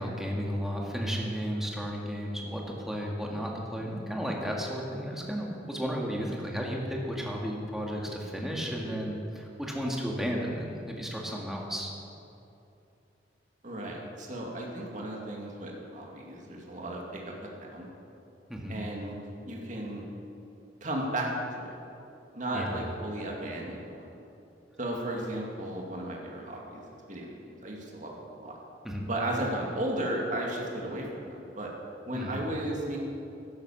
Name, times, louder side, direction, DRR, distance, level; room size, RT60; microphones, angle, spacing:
voice 1, 0.0-11.9 18.5-18.9 22.5-22.7 28.8-29.1 32.1-32.4, equal, ahead, -1 dB, 1.8 m, -33 dB
voice 2, 13.6-17.3 17.6-17.9 18.7-19.2 19.5-20.0 20.8-21.7 22.3-24.1 24.8-28.6 29.1-31.7 32.1-33.0, right 1 dB, 45° right, -1 dB, 2.3 m, -35 dB
12.0 x 10.5 x 7.3 m, 2.7 s
head